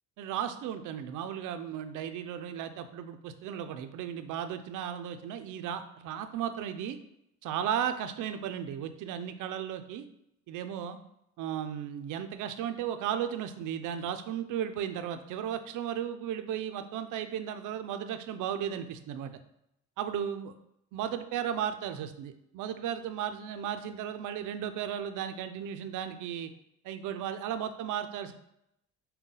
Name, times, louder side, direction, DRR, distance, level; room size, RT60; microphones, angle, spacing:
voice 1, 0.2-7.0 7.4-10.1 10.5-11.0 11.4-19.3 20.0-20.5 20.9-26.5 26.8-28.3, right 9 dB, 85° right, 9 dB, 0.5 m, -35 dB
5.5 x 2.2 x 3.8 m, 0.81 s
cardioid pair, 90°, 30 cm